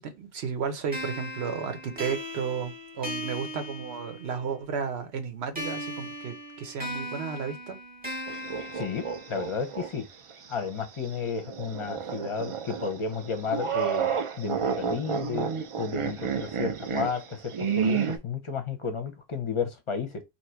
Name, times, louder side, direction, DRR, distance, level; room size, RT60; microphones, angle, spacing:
voice 1, 0.0-7.8, right 6 dB, 80° right, 1.1 m, -33 dB
sound 1, 0.9-4.5 5.6-9.6, equal, 10° right, 0.9 m, -38 dB
sound 2, 8.3-9.9 10.3-10.4 11.4-18.2, right 7 dB, 60° right, 0.3 m, -30 dB
voice 2, 8.7-10.1 10.5-15.5 15.8-20.2, left 5 dB, 35° left, 0.7 m, -32 dB
2.9 x 2.5 x 4.3 m
omnidirectional pair, 1.1 m